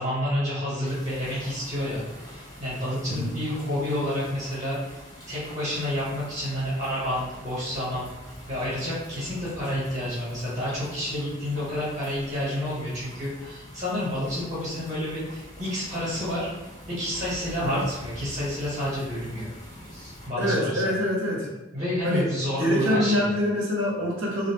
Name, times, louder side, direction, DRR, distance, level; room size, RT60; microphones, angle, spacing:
voice 1, 0.0-2.0 2.6-4.8 5.3-8.1 8.5-16.5 17.0-19.5 19.9-20.9 21.7-23.3, left 1 dB, 35° right, -8 dB, 1.1 m, -29 dB
sound 1, 0.8-20.3, equal, 20° left, 0.8 m, -44 dB
voice 2, 20.4-21.5 22.0-22.3 22.6-24.5, equal, 75° right, -2 dB, 0.7 m, -25 dB
2.5 x 2.0 x 2.9 m, 1.1 s
head